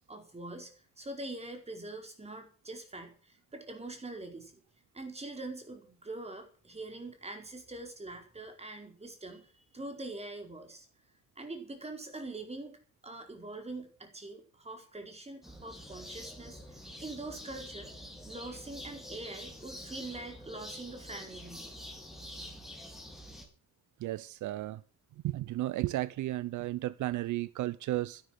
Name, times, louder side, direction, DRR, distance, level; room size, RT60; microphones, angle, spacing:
voice 1, 0.1-0.7 1.0-4.5 4.9-10.9 11.4-17.9 18.2-21.7, right 2 dB, 20° right, 4.7 m, -44 dB
sound 1, 15.4-23.5, equal, ahead, 4.8 m, -47 dB
voice 2, 24.0-24.8 25.2-28.2, right 16 dB, 75° right, 0.7 m, -33 dB
12.0 x 11.5 x 6.1 m
cardioid pair, 90°, 30 cm